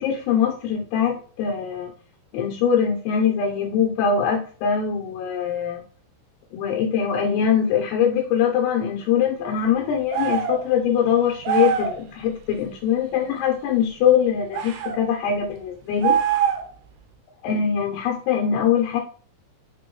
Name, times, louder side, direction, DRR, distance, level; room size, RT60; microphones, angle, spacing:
voice 1, 0.0-1.9 2.3-5.8 6.5-16.2 17.4-19.0, left 8 dB, 75° left, 2 dB, 2.7 m, -22 dB
sound 1, 10.1-10.6 11.4-12.0 14.5-15.0 16.0-16.8, right 9 dB, 80° right, 3.3 m, -23 dB
7.7 x 3.7 x 3.2 m, 0.42 s
omnidirectional pair, 5.3 m